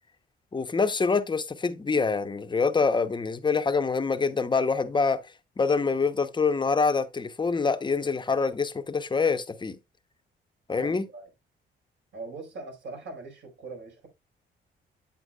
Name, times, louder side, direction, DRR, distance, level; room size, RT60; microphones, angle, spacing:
voice 1, 0.5-5.2 5.6-9.8 10.7-11.0, left 4 dB, 25° left, 0.8 m, -25 dB
voice 2, 10.7-11.3 12.1-14.1, right 3 dB, 65° right, 4.6 m, -41 dB
8.5 x 8.1 x 2.3 m
cardioid pair, 90°, 20 cm